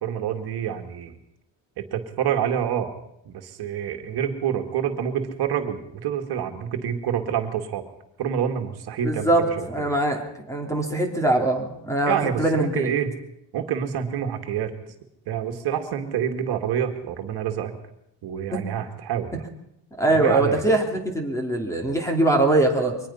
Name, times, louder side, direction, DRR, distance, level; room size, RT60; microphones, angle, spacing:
voice 1, 0.0-1.2 1.8-2.9 3.3-7.8 8.2-9.8 12.1-13.1 13.5-14.7 15.3-17.7 18.2-19.4 20.1-20.6, right 9 dB, 55° right, 5 dB, 2.2 m, -27 dB
voice 2, 9.0-10.2 10.5-12.9 18.5-18.6 20.0-23.0, right 2 dB, 5° left, 3 dB, 2.8 m, -22 dB
23.5 x 19.5 x 5.7 m, 0.78 s
cardioid pair, 160°, 46 cm